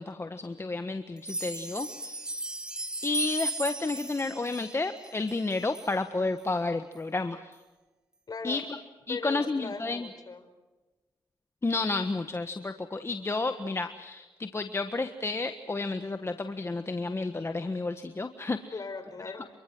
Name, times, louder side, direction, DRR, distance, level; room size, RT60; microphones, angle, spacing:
voice 1, 0.0-2.3 3.0-7.6 8.4-8.6 9.1-10.1 11.6-18.7, left 3 dB, 30° left, 8 dB, 1.4 m, -31 dB
sound 1, 1.2-5.9 6.4-6.5 6.9-7.0 7.5-7.6, right 2 dB, 10° right, 4.4 m, -36 dB
voice 2, 8.3-8.6 9.1-10.5 18.7-19.5, left 4 dB, 50° left, 9 dB, 4.4 m, -39 dB
28.0 x 24.0 x 6.2 m, 1.2 s
cardioid pair, 65°, 9 cm